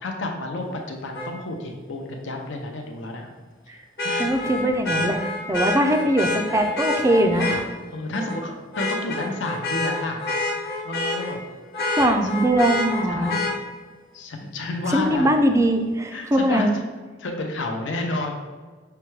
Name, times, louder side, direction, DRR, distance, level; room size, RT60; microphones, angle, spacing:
voice 1, 0.0-3.3 3.7-4.4 5.7-5.8 7.9-10.2 10.8-11.4 13.1-13.5 14.1-15.3 16.1-16.8 17.2-18.3, left 2 dB, 90° left, 2 dB, 0.6 m, -30 dB
Vehicle horn car horn honking, 1.1-1.3 4.0-7.6 8.1-8.4 8.7-11.4 11.7-13.5 15.4-15.5, left 2 dB, 60° left, 0.9 m, -27 dB
voice 2, 4.2-5.2 5.5-7.5 12.0-13.4 14.9-16.7, right 1 dB, 15° right, 5 dB, 0.3 m, -21 dB
5.7 x 2.2 x 3.2 m, 1.4 s
head